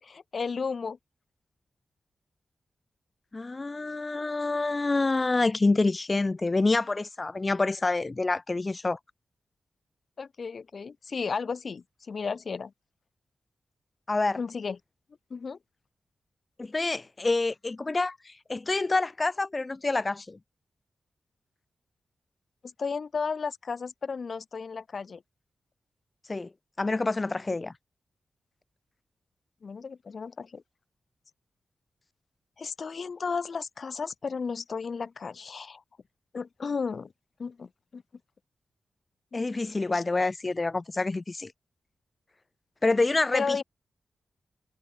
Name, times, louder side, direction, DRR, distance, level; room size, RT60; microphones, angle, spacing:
voice 1, 0.0-1.0 10.2-12.7 14.4-14.8 15.3-15.6 22.8-25.2 29.6-30.6 32.6-35.8 36.3-37.1 37.4-38.0 39.3-39.5 39.9-40.0 43.3-43.6, left 5 dB, 45° left, 6.9 m, -33 dB
voice 2, 3.3-9.0 14.1-14.4 16.6-20.4 26.3-26.5 26.8-27.7 39.3-41.5 42.8-43.6, left 3 dB, 25° left, 2.7 m, -27 dB
wide cardioid pair, 145°, 0 cm